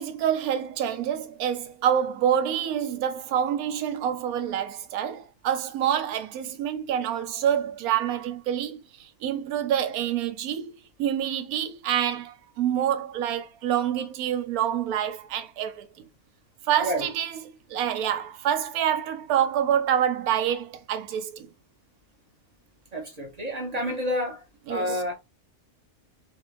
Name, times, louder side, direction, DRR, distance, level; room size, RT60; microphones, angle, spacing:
voice 1, 0.0-10.7 11.0-15.9 16.7-17.4 17.7-21.5 24.7-24.8, right 9 dB, 80° right, 1.1 m, -27 dB
voice 2, 16.8-17.1 22.9-24.4 24.7-25.1, equal, 40° right, 0.6 m, -29 dB
2.7 x 2.4 x 3.0 m
omnidirectional pair, 1.5 m